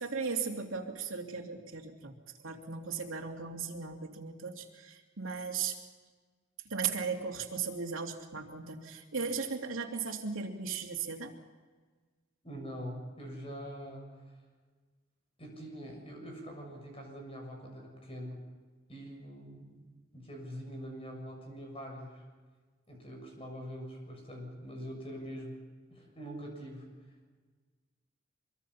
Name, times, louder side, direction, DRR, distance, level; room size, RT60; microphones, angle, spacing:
voice 1, 0.0-2.2 2.4-5.8 6.6-11.3, right 5 dB, 85° right, 2 dB, 2.8 m, -37 dB
voice 2, 12.4-14.2 15.4-18.4 18.9-19.8 20.1-22.2 22.9-25.6 25.9-26.9, equal, 30° left, 1 dB, 7.1 m, -44 dB
25.0 x 23.5 x 5.8 m, 1.4 s
head